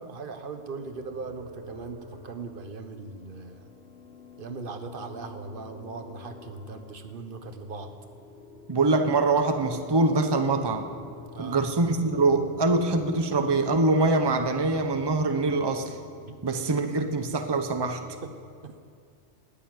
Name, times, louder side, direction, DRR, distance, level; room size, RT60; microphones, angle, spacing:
voice 1, 0.0-3.7 4.4-7.9 11.3-11.6 16.2-16.3 18.2-18.3 18.6-18.8, right 4 dB, 50° right, 7 dB, 1.2 m, -39 dB
sound 1, 0.8-18.0, left 3 dB, 70° left, 1.9 m, -46 dB
voice 2, 8.7-10.9 11.4-16.0 16.4-18.0, right 3 dB, 25° right, 6 dB, 0.8 m, -24 dB
18.5 x 6.8 x 9.5 m, 2.2 s
omnidirectional pair, 1.2 m